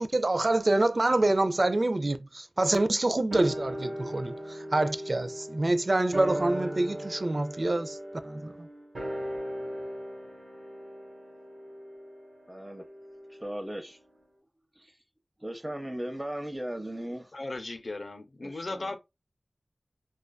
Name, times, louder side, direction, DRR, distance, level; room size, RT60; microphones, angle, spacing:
voice 1, 0.0-8.0 8.2-8.7, right 2 dB, 55° right, 0.3 m, -26 dB
sound 1, 3.3-13.9 14.2-14.3, right 1 dB, 90° right, 1.2 m, -38 dB
voice 2, 12.5-12.8 13.4-14.0 14.8-14.9 15.4-17.3 18.4-19.0, right 1 dB, 20° right, 0.7 m, -37 dB
voice 3, 17.3-19.0, left 2 dB, 75° left, 0.4 m, -36 dB
2.4 x 2.3 x 2.2 m
wide cardioid pair, 50°, 0 cm